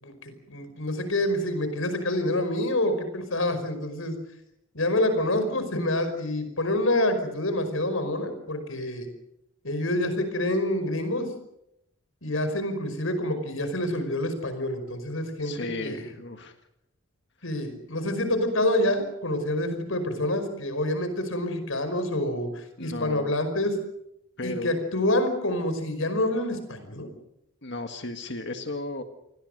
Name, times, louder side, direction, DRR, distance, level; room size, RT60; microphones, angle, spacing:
voice 1, 0.0-4.1 4.7-9.1 9.6-11.3 12.2-16.1 17.4-23.8 24.4-27.1, left 1 dB, 75° left, 9 dB, 5.3 m, -27 dB
voice 2, 15.4-16.5 22.8-23.3 24.4-24.8 27.6-29.0, left 2 dB, 55° left, 6 dB, 1.8 m, -35 dB
28.5 x 20.5 x 6.7 m, 0.81 s
head